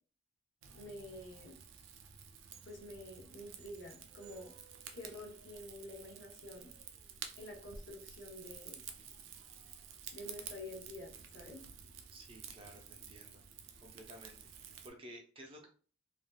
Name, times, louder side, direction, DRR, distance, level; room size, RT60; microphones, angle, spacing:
Rain / Fire, 0.6-14.9, right 7 dB, 85° right, 0.4 m, -52 dB
voice 1, 0.7-1.6 2.7-4.5 4.9-6.7 7.4-8.8 10.1-11.6, left 1 dB, 75° left, 1 dB, 0.8 m, -49 dB
voice 2, 12.1-13.4 13.8-15.7, right 1 dB, 30° right, 2 dB, 0.6 m, -54 dB
3.4 x 2.4 x 2.3 m, 0.40 s
head